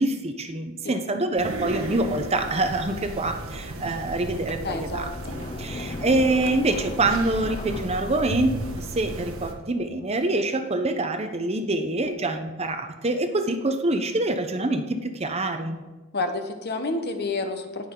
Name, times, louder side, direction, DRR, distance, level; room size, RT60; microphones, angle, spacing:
voice 1, 0.0-5.1 5.6-15.8, right 2 dB, 30° right, 6 dB, 0.7 m, -25 dB
sound 1, 1.4-9.5, right 1 dB, 65° right, 1.3 m, -35 dB
Sliding door, 2.1-3.0 3.6-3.7 4.3-9.1, left 3 dB, 25° left, 0.4 m, -38 dB
voice 2, 4.6-5.4 16.1-17.9, left 2 dB, 45° left, 6 dB, 1.1 m, -30 dB
18.5 x 6.3 x 3.8 m, 1.1 s
head